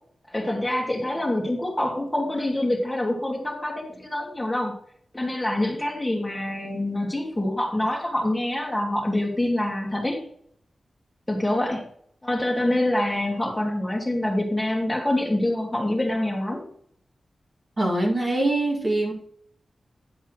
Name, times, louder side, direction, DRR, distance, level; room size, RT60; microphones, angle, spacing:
voice 1, 0.3-4.7 5.1-10.2 11.3-11.8 12.2-16.6, left 1 dB, 10° left, 0 dB, 2.3 m, -26 dB
voice 2, 17.8-19.1, right 2 dB, 35° right, -1 dB, 2.1 m, -23 dB
10.5 x 4.3 x 6.3 m, 0.63 s
wide cardioid pair, 115°, 0 cm